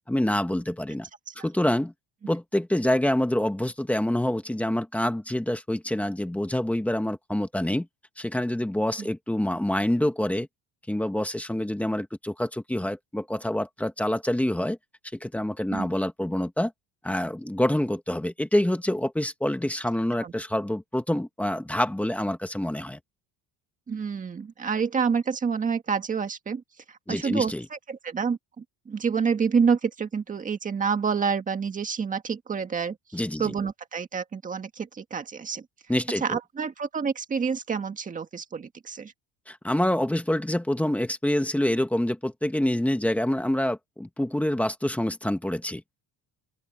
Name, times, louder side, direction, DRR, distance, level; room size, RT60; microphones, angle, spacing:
voice 1, 0.1-1.1 1.4-1.9 2.3-7.9 8.2-10.5 10.9-14.8 15.1-16.7 17.0-23.0 27.1-27.6 33.1-33.5 35.9-36.4 39.5-46.0, left 1 dB, 5° left, 1.4 m, -26 dB
voice 2, 23.9-26.6 27.1-27.5 27.9-33.0 33.4-35.6 36.2-39.1, right 6 dB, 20° right, 1.8 m, -28 dB
open air
cardioid pair, 175°, 38 cm